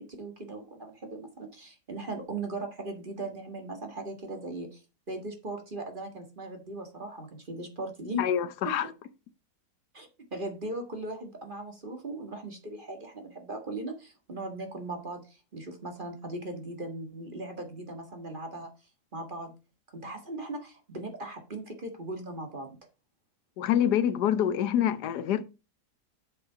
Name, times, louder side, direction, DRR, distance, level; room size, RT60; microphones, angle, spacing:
voice 1, 0.0-4.8 5.1-8.2 8.8-8.9 9.9-18.7 19.1-19.5 19.9-22.8, right 2 dB, 30° right, 1.7 m, -38 dB
voice 2, 8.2-8.9 23.6-25.4, left 10 dB, 80° left, 1.3 m, -26 dB
7.6 x 5.5 x 5.5 m
omnidirectional pair, 1.7 m